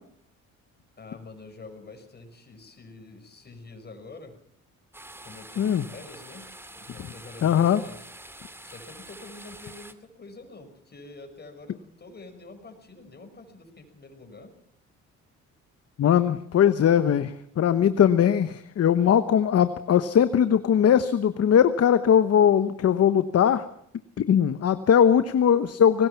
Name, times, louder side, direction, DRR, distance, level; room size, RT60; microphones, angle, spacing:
voice 1, 1.0-4.4 5.2-8.1 8.6-14.6, left 3 dB, 35° left, 6 dB, 5.9 m, -46 dB
sound 1, 4.9-9.9, right 1 dB, 10° right, 2.1 m, -46 dB
voice 2, 7.4-7.8 16.0-23.7 24.2-26.1, left 9 dB, 55° left, 11 dB, 1.1 m, -20 dB
23.5 x 19.0 x 5.9 m, 0.71 s
cardioid pair, 90°, 30 cm